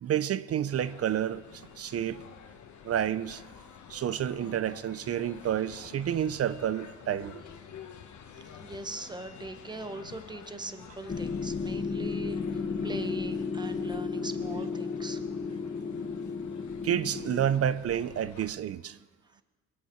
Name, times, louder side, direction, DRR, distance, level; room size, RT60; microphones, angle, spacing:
voice 1, 0.0-2.2 2.8-3.4 3.9-7.4 16.8-19.0, right 9 dB, 50° right, 0.6 m, -30 dB
sound 1, 0.7-18.5, left 7 dB, 70° left, 1.3 m, -50 dB
voice 2, 8.6-12.4 12.8-15.2, right 2 dB, 15° right, 1.1 m, -40 dB
sound 2, 11.1-17.5, left 5 dB, 30° left, 0.8 m, -33 dB
21.0 x 9.5 x 4.6 m
cardioid pair, 90°, 30 cm